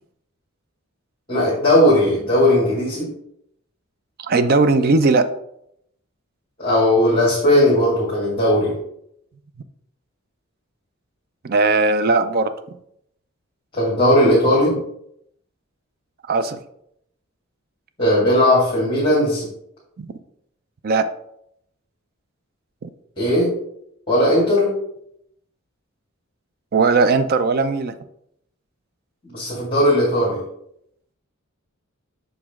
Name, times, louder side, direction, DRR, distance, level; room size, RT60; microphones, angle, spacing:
voice 1, 1.3-3.1 6.6-8.7 13.7-14.7 18.0-19.5 23.2-23.5 24.1-24.7 29.2-30.4, left 1 dB, 25° left, -7 dB, 2.0 m, -17 dB
voice 2, 4.2-5.3 11.4-12.5 16.3-16.6 20.0-20.1 20.8-21.1 22.8-22.9 26.7-28.0, right 3 dB, 45° right, 11 dB, 0.4 m, -18 dB
6.3 x 5.0 x 3.6 m, 0.74 s
head